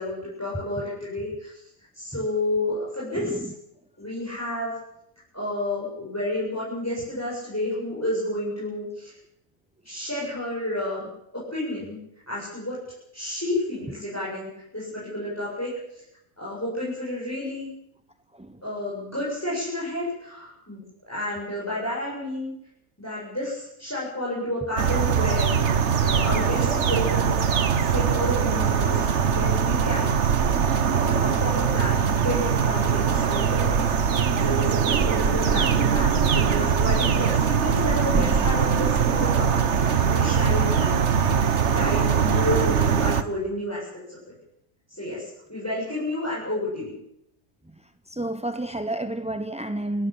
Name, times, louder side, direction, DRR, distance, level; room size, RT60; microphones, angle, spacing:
voice 1, 0.0-1.5 1.9-3.4 4.0-4.7 5.3-9.1 9.8-11.1 11.5-12.0 12.3-12.7 13.1-15.7 16.4-17.7 18.6-20.8 21.1-22.5 23.0-25.5 26.0-27.4 27.9-30.4 30.9-33.8 34.4-39.5 39.8-41.1 41.6-43.8 44.1-44.2 44.9-45.2 45.5-46.9, left 1 dB, 10° left, 7.9 m, -30 dB
voice 2, 3.1-3.5 18.4-18.6 38.1-38.3 48.1-50.1, right 1 dB, 10° right, 0.5 m, -30 dB
sound 1, 24.8-43.2, right 7 dB, 55° right, 1.4 m, -22 dB
29.0 x 12.5 x 8.9 m
omnidirectional pair, 1.5 m